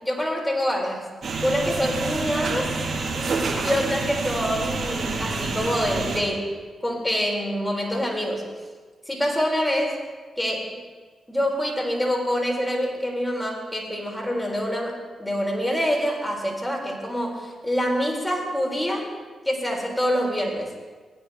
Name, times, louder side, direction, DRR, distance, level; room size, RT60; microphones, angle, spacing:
voice 1, 0.0-1.1 1.4-6.5 6.8-8.4 9.1-10.0 10.4-10.8 11.3-19.1 19.4-20.7, equal, 15° left, 0 dB, 4.1 m, -26 dB
sound 1, 1.2-6.2, right 3 dB, 60° right, 2.2 m, -28 dB
18.0 x 9.9 x 3.6 m, 1.4 s
supercardioid pair, 45°, 0 cm